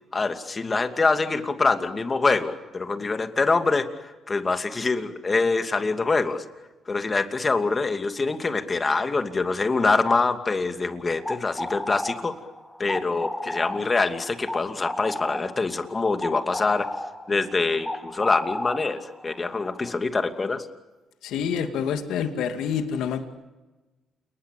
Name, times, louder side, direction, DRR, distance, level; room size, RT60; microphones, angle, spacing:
voice 1, 0.1-6.4 6.9-12.3 12.8-16.9 17.3-20.7, left 3 dB, 30° left, 7 dB, 2.7 m, -25 dB
sound 1, 11.1-19.9, left 1 dB, 5° left, 2.5 m, -34 dB
voice 2, 21.2-23.2, left 7 dB, 85° left, 7 dB, 2.3 m, -27 dB
29.5 x 20.0 x 8.5 m, 1.1 s
cardioid pair, 90°, 0 cm